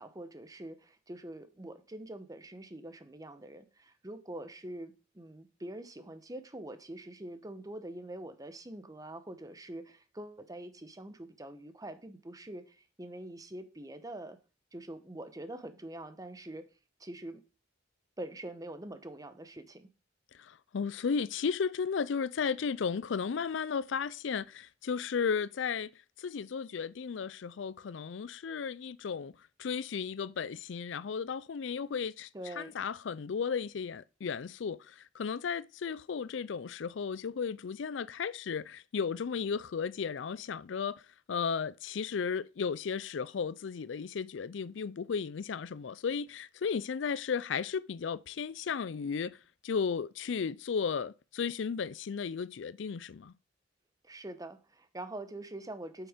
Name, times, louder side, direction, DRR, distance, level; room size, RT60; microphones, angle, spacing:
voice 1, 0.0-14.4 14.7-16.6 17.0-17.4 18.2-19.9 32.3-32.8 54.0-56.1, right 1 dB, 20° right, 1.0 m, -44 dB
voice 2, 20.4-25.9 26.2-29.3 29.6-32.3 32.6-41.0 41.3-49.4 49.6-53.3, left 6 dB, 75° left, 0.4 m, -34 dB
8.7 x 8.2 x 5.1 m
head